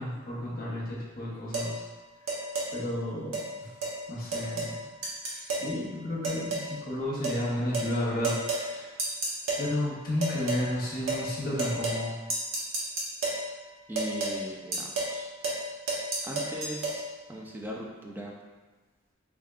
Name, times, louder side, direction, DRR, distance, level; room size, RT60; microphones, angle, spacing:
voice 1, 0.0-1.8 2.7-3.7 4.1-4.8 5.3-8.9 9.6-12.1, left 1 dB, 45° left, -5 dB, 0.9 m, -32 dB
sound 1, 1.5-1.7 2.3-2.7 3.3-3.5 3.8-4.0 4.3-4.8 5.0-5.7 6.2-6.7 7.2-7.4 7.7-7.9 8.2-8.7 9.0-9.7 10.2-10.7 11.1-11.3 11.6-12.0 12.3-13.4 14.0-14.4 14.7-15.2 15.4-15.6 15.9-17.0, right 2 dB, 85° right, 0.9 m, -31 dB
voice 2, 13.9-15.3 16.2-17.0 17.3-18.3, right 1 dB, 10° right, -2 dB, 0.4 m, -39 dB
3.6 x 3.5 x 2.4 m, 1.2 s
head